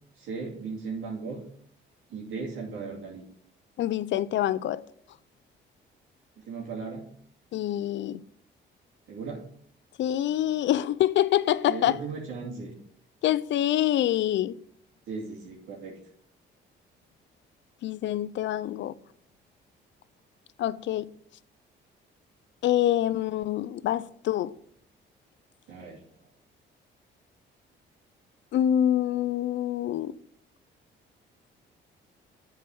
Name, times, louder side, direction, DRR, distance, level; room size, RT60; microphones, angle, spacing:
voice 1, 0.2-1.4 2.1-3.2 6.4-7.0 9.1-9.4 11.7-12.7 15.1-15.9 25.7-26.0, right 4 dB, 90° right, 2.4 m, -36 dB
voice 2, 3.8-4.8 7.5-8.2 10.0-12.0 13.2-14.6 17.8-18.9 20.6-21.1 22.6-24.5 28.5-30.1, left 12 dB, 65° left, 0.5 m, -26 dB
8.2 x 4.6 x 6.1 m
cardioid pair, 90°, 20 cm